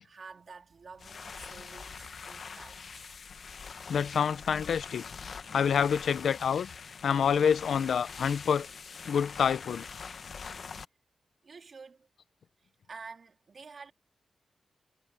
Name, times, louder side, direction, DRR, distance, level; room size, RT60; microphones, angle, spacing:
voice 1, 0.0-3.2 11.4-12.1 12.6-13.9, right 4 dB, 50° right, 3.1 m, -49 dB
sound 1, 0.9-10.8, left 5 dB, 60° left, 1.3 m, -44 dB
voice 2, 3.9-5.0 5.5-6.7 7.0-8.7 9.1-9.9, left 7 dB, 85° left, 0.7 m, -27 dB
wide cardioid pair, 115°, 0 cm